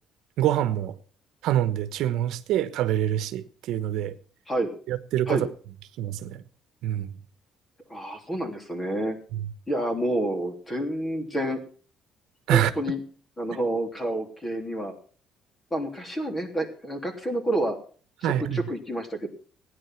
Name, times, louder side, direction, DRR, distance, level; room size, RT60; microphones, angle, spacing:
voice 1, 0.4-0.9 1.4-4.2 4.9-5.5 6.0-6.4 6.8-7.2 9.3-9.5 12.5-12.7 18.2-18.6, right 12 dB, 75° right, 1.2 m, -25 dB
voice 2, 7.9-9.2 9.7-11.6 12.5-13.0 13.4-14.9 15.7-17.8 18.2-19.3, right 1 dB, 15° left, 3.2 m, -29 dB
16.5 x 10.0 x 5.9 m
cardioid pair, 145°, 0 cm